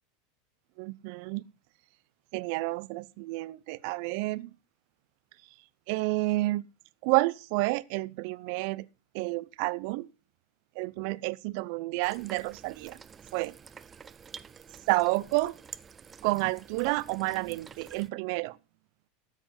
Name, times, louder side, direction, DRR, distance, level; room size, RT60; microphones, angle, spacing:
voice 1, 0.8-1.4 2.3-4.5 5.9-6.7 7.0-8.9 9.1-10.1 10.8-13.0 13.3-13.5 14.9-15.5 16.2-18.6, right 22 dB, 60° right, 0.7 m, -30 dB
sound 1, 12.0-18.1, right 6 dB, 25° right, 0.8 m, -49 dB
13.0 x 7.9 x 5.9 m
hypercardioid pair, 90°, 0 cm